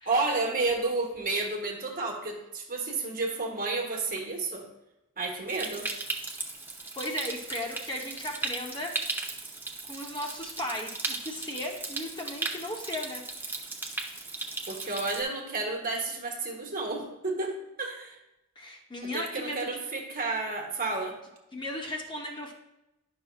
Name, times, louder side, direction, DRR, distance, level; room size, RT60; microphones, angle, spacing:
voice 1, 0.0-4.7 5.2-5.9 14.7-18.2 19.1-21.1, right 3 dB, 40° right, 0 dB, 1.5 m, -31 dB
Stream, 5.5-15.2, right 3 dB, 10° right, 0.7 m, -37 dB
voice 2, 7.0-8.9 9.8-13.2 18.6-19.8 21.5-22.5, left 1 dB, 20° left, 0 dB, 0.9 m, -36 dB
10.5 x 6.1 x 2.3 m, 0.94 s
head